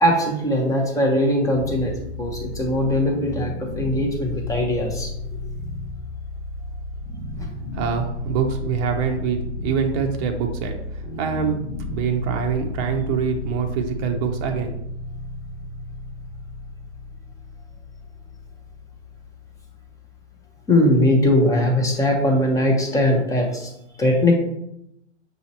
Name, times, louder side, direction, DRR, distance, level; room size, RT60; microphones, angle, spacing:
voice 1, 0.0-5.1 7.4-7.5 20.7-23.7 24.0-24.3, left 1 dB, 10° left, 1 dB, 0.7 m, -20 dB
sound 1, 1.5-20.5, left 2 dB, 65° left, 1.5 m, -33 dB
voice 2, 7.7-11.6 11.9-14.8, right 6 dB, 30° right, 4 dB, 0.6 m, -25 dB
6.2 x 2.8 x 2.7 m, 0.80 s
hypercardioid pair, 120°, 36 cm